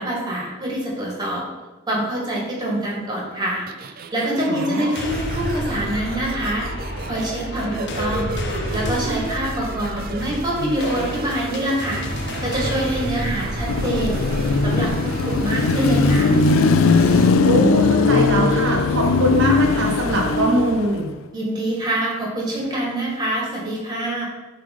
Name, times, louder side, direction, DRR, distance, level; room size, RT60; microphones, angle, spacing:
voice 1, 0.0-1.4 1.9-3.7 4.1-6.7 7.1-8.3 8.7-12.0 12.4-14.2 14.6-16.4 21.3-24.3, right 1 dB, 20° right, -4 dB, 1.7 m, -25 dB
sound 1, 3.7-17.3, right 4 dB, 45° right, 0.4 m, -34 dB
voice 2, 4.5-4.9 17.2-21.1, right 1 dB, 65° right, 0 dB, 0.8 m, -22 dB
sound 2, 4.7-14.9, left 1 dB, 60° left, 0.8 m, -30 dB
Car passing by / Traffic noise roadway noise / Engine, 13.7-21.0, left 4 dB, 80° left, 0.4 m, -18 dB
7.0 x 3.3 x 5.2 m, 1.2 s
head